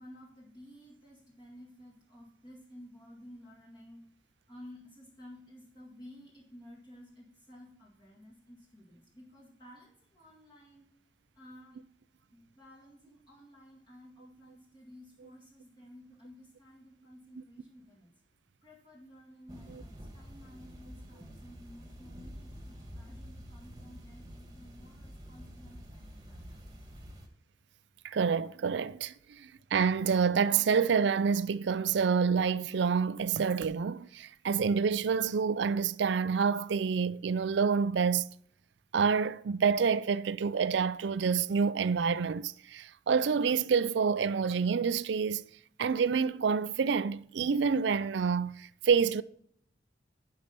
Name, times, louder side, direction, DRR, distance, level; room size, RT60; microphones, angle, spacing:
voice 1, 0.0-4.1 4.5-10.8 11.4-11.8 12.3-18.1 18.6-26.6, left 1 dB, 25° left, 2.0 m, -53 dB
sound 1, 19.5-27.3, equal, 20° right, 1.5 m, -48 dB
voice 2, 28.0-38.3 38.9-45.5 45.8-49.2, right 6 dB, 75° right, 0.4 m, -28 dB
11.5 x 5.6 x 5.3 m
head